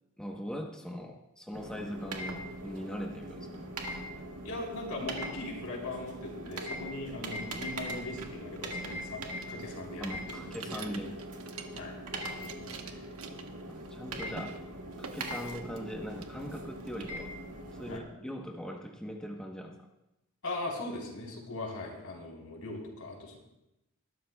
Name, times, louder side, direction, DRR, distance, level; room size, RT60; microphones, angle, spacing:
voice 1, 0.2-4.1 10.0-11.2 13.7-14.5 15.0-17.3 17.7-19.9, equal, 5° left, 1 dB, 0.9 m, -41 dB
sound 1, 1.5-18.0, right 1 dB, 85° right, 1.7 m, -41 dB
voice 2, 4.4-10.9 11.7-13.1 17.9-18.0 20.4-23.4, left 2 dB, 80° left, -1 dB, 3.7 m, -40 dB
sound 2, 9.4-12.0 12.3-14.0 14.3-14.6 15.0-15.9 16.2-17.0, right 5 dB, 70° right, 1.1 m, -47 dB
21.0 x 12.5 x 2.3 m, 0.91 s
head